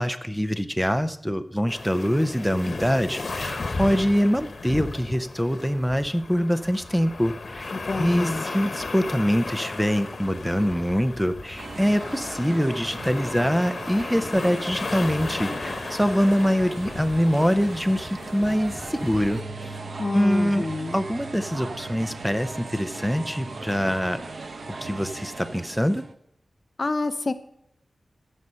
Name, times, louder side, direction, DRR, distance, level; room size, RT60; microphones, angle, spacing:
voice 1, 0.0-19.7 20.1-20.7 20.9-24.2 24.8-26.0, equal, ahead, 10 dB, 0.6 m, -24 dB
sound 1, 1.7-19.4, left 3 dB, 55° left, 1.1 m, -35 dB
voice 2, 7.7-8.4 20.0-21.0 26.8-27.3, left 3 dB, 40° left, 12 dB, 0.5 m, -28 dB
sound 2, 11.6-26.1, right 3 dB, 60° right, 0.8 m, -38 dB
sound 3, 19.2-25.5, right 4 dB, 35° right, 3.7 m, -44 dB
14.0 x 5.5 x 6.3 m, 0.77 s
wide cardioid pair, 120°, 0 cm